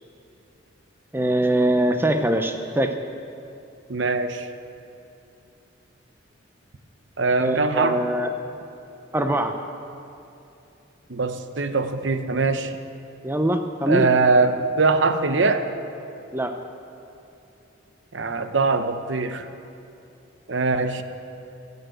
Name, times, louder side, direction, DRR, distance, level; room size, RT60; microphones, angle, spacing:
voice 1, 1.1-2.9 7.4-8.3 9.1-9.5 13.2-14.1 16.3-16.5, right 1 dB, 10° right, 6 dB, 0.5 m, -22 dB
voice 2, 3.9-4.5 7.2-8.0 11.1-12.8 13.9-15.7 18.1-19.5 20.5-21.0, right 3 dB, 65° right, 9 dB, 0.7 m, -22 dB
17.0 x 6.8 x 7.9 m, 2.8 s
head